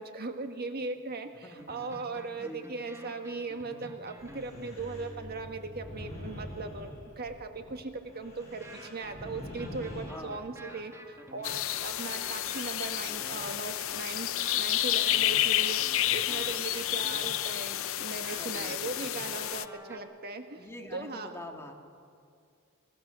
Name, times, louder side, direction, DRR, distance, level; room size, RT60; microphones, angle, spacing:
voice 1, 0.0-6.9 7.2-21.3, right 3 dB, 50° right, 6 dB, 1.7 m, -39 dB
voice 2, 1.4-1.7 2.4-2.7 10.1-10.4 16.3-16.5 18.3-18.8 20.6-21.7, left 1 dB, 10° left, 2 dB, 1.8 m, -45 dB
sound 1, 1.5-6.8 8.6-20.0, right 1 dB, 15° right, 1.5 m, -49 dB
sound 2, 4.2-10.1, equal, 30° left, 7.1 m, -45 dB
sound 3, 11.4-19.7, left 13 dB, 65° left, 0.7 m, -30 dB
24.0 x 17.5 x 6.9 m, 2.3 s
head